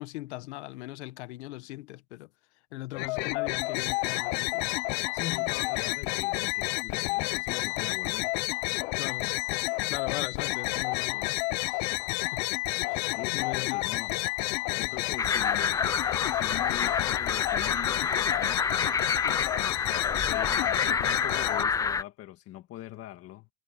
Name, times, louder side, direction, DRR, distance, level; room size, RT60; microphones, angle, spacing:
voice 1, 0.0-2.3 2.7-4.7 9.0-9.3 9.9-12.5 12.9-13.9 19.2-19.4, left 19 dB, 90° left, 1.1 m, -40 dB
sound 1, 2.9-21.6, left 26 dB, 70° left, 0.7 m, -30 dB
voice 2, 5.1-8.3 13.0-14.3 14.8-15.8 16.2-18.7 19.6-23.5, left 14 dB, 45° left, 1.6 m, -42 dB
sound 2, 9.9-17.7, right 11 dB, 40° right, 4.4 m, -58 dB
sound 3, 15.2-22.0, left 5 dB, 10° left, 0.3 m, -29 dB
supercardioid pair, 125°, 33 cm